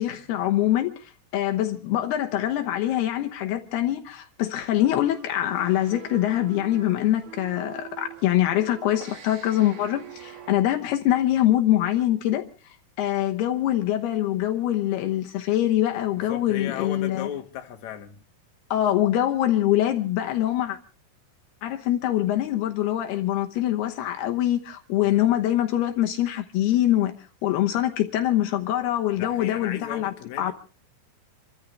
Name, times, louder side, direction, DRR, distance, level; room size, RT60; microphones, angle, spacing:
voice 1, 0.0-12.5 13.0-17.3 18.7-20.8 21.6-27.1 27.4-30.5, left 13 dB, 75° left, 3.0 m, -24 dB
sound 1, 5.1-10.5, right 10 dB, 55° right, 3.0 m, -44 dB
voice 2, 16.3-18.2 25.0-25.2 29.2-30.5, left 9 dB, 55° left, 2.5 m, -36 dB
28.5 x 14.0 x 3.2 m
omnidirectional pair, 4.9 m